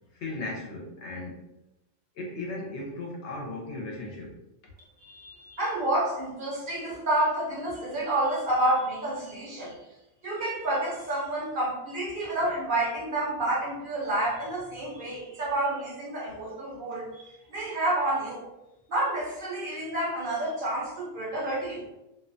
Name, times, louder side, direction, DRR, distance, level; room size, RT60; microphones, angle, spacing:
voice 1, 0.1-1.4 2.1-4.4, left 2 dB, 70° left, -1 dB, 0.9 m, -36 dB
voice 2, 5.0-9.8 10.2-18.5 18.9-21.9, right 1 dB, 55° right, -5 dB, 0.6 m, -29 dB
2.4 x 2.1 x 2.5 m, 0.91 s
omnidirectional pair, 1.3 m